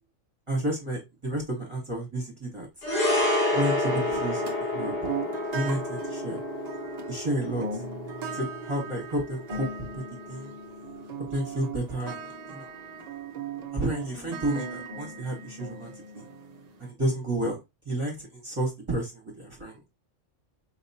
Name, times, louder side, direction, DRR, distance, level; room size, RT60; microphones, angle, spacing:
voice 1, 0.5-2.7 3.5-5.1 5.5-6.4 7.1-7.6 8.3-9.7 9.9-10.0 10.3-10.5 11.3-12.2 12.5-12.7 13.7-16.2 16.8-17.5 17.9-19.8, right 1 dB, 25° right, 1.3 m, -31 dB
sound 1, 2.8-11.3 11.6-11.8, left 1 dB, 80° left, 1.7 m, -30 dB
sound 2, 3.8-16.9, right 4 dB, 50° right, 0.5 m, -39 dB
4.6 x 2.9 x 2.7 m
omnidirectional pair, 1.3 m